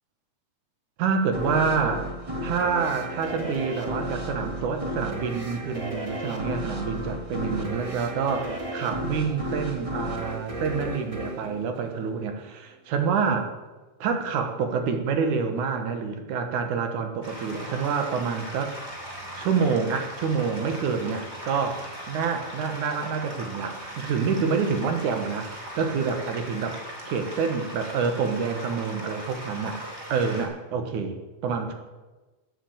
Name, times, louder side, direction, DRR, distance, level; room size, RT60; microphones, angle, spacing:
voice 1, 1.0-2.1 2.4-13.5 14.0-18.7 19.3-29.8 30.1-31.2 31.4-31.7, right 5 dB, 75° right, 6 dB, 2.8 m, -27 dB
sound 1, 1.3-12.5, equal, 40° right, 0.4 m, -34 dB
sound 2, 17.2-30.4, equal, 20° right, 3.1 m, -39 dB
13.0 x 9.0 x 8.6 m, 1.2 s
omnidirectional pair, 3.6 m